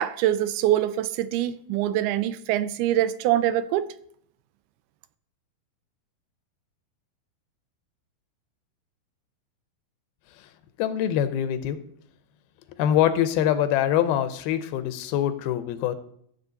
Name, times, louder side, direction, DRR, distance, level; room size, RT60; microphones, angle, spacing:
voice 1, 0.0-3.9, right 12 dB, 85° right, 2.5 m, -24 dB
voice 2, 10.8-11.8 12.8-16.0, left 10 dB, 80° left, 2.6 m, -24 dB
14.5 x 7.1 x 4.0 m
omnidirectional pair, 4.5 m